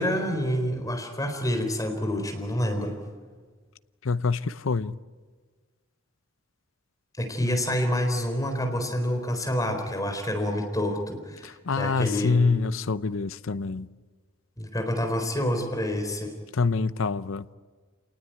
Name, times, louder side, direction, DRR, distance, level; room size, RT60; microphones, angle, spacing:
voice 1, 0.0-3.0 7.2-12.3 14.6-16.3, equal, 20° left, 4.1 m, -28 dB
voice 2, 4.0-5.0 7.4-7.6 11.4-13.9 16.5-17.5, left 4 dB, 85° left, 0.7 m, -26 dB
28.0 x 19.5 x 9.4 m
head